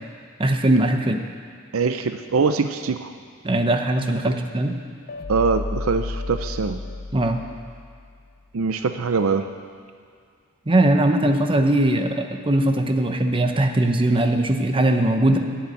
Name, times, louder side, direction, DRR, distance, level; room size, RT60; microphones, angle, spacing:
voice 1, 0.4-1.2 3.4-4.7 7.1-7.4 10.7-15.4, right 1 dB, 25° right, 5 dB, 0.8 m, -20 dB
voice 2, 1.7-3.1 4.3-4.4 5.3-6.8 8.5-9.5, right 4 dB, 70° right, 9 dB, 0.5 m, -23 dB
sound 1, 5.1-8.3, left 2 dB, 45° left, 0.6 m, -32 dB
11.0 x 7.9 x 9.1 m, 2.1 s
head